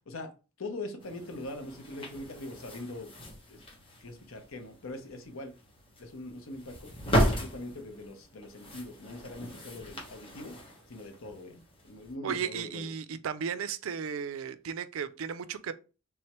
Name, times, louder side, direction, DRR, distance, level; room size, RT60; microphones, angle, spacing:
voice 1, 0.6-3.1 3.5-3.6 4.0-5.5 6.0-6.9 7.3-10.6 10.9-12.9, left 2 dB, 90° left, 0.8 m, -42 dB
sound 1, 1.0-12.1, equal, 25° left, 1.0 m, -36 dB
voice 2, 12.2-15.7, right 7 dB, 80° right, 0.4 m, -35 dB
3.5 x 3.2 x 3.0 m
head